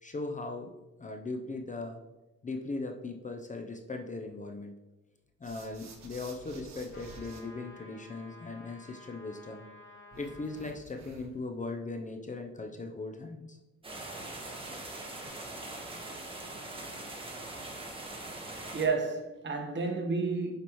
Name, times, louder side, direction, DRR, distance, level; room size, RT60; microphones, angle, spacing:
voice 1, 0.0-2.0 2.4-4.8 5.4-9.7 10.2-13.6 14.6-14.8, left 3 dB, 25° left, 0.7 m, -39 dB
sound 1, 5.4-7.4 10.1-11.4, right 4 dB, 65° right, 1.4 m, -51 dB
sound 2, 6.9-10.8, left 2 dB, 45° left, 1.9 m, -53 dB
sound 3, 13.8-18.9, right 2 dB, 15° right, 1.6 m, -42 dB
voice 2, 18.5-20.6, right 4 dB, 40° right, 1.3 m, -31 dB
8.3 x 5.1 x 3.1 m
cardioid pair, 90°, 30 cm